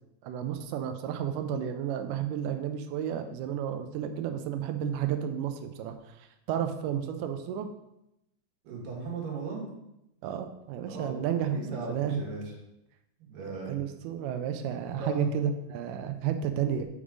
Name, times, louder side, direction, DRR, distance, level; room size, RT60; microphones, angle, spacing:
voice 1, 0.2-7.7 10.2-12.2 13.7-16.9, right 8 dB, 85° right, 7 dB, 1.9 m, -32 dB
voice 2, 8.6-9.7 10.9-11.2 11.5-12.5 13.2-13.8 15.0-15.3, right 3 dB, 70° right, -2 dB, 3.1 m, -37 dB
5.5 x 4.9 x 4.9 m, 0.86 s
omnidirectional pair, 4.3 m